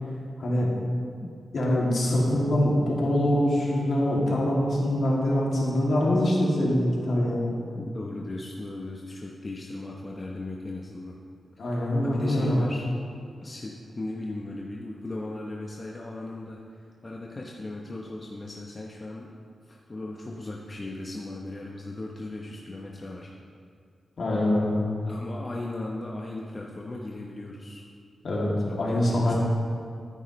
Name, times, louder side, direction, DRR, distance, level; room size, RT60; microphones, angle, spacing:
voice 1, 0.4-0.7 1.5-7.6 11.6-12.7 24.2-24.8 28.2-28.5 28.8-29.3, left 1 dB, 65° left, -4 dB, 2.5 m, -24 dB
voice 2, 7.8-11.2 11.6-11.8 12.0-12.9 13.4-19.3 19.7-23.3 25.1-27.8 28.7-29.3, left 2 dB, 35° left, -2 dB, 0.9 m, -37 dB
13.5 x 9.3 x 3.2 m, 2.3 s
wide cardioid pair, 95°, 0 cm